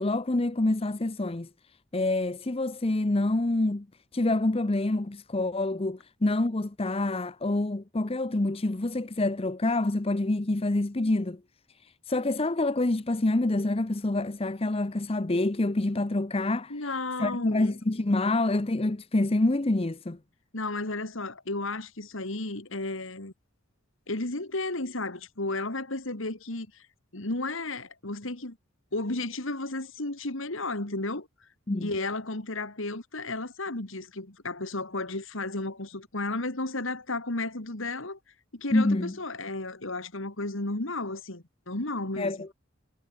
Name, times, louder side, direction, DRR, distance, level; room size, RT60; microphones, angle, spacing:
voice 1, 0.0-1.5 1.9-3.9 4.1-11.4 12.1-16.7 17.2-20.2 31.7-31.9 38.7-39.1 42.2-42.5, left 2 dB, 25° left, 0.7 m, -27 dB
voice 2, 16.7-17.8 20.5-23.3 24.1-26.7 27.1-28.6 28.9-31.3 31.8-38.2 38.5-42.4, left 2 dB, 65° left, 2.5 m, -33 dB
head